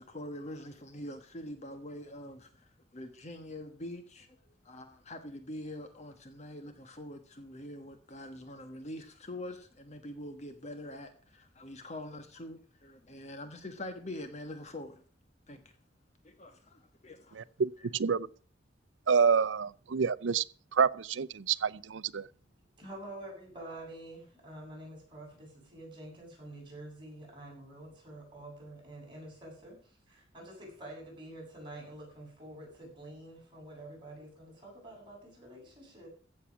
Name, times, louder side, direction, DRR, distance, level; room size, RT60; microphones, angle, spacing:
voice 1, 0.0-15.0 15.5-15.6 16.2-17.4 17.8-17.9, left 1 dB, 35° left, 1.3 m, -44 dB
voice 2, 17.3-18.3 19.1-20.4 20.7-22.3, right 6 dB, 80° right, 0.5 m, -28 dB
voice 3, 22.8-36.1, right 1 dB, 25° right, 7.5 m, -48 dB
15.5 x 7.2 x 6.1 m
head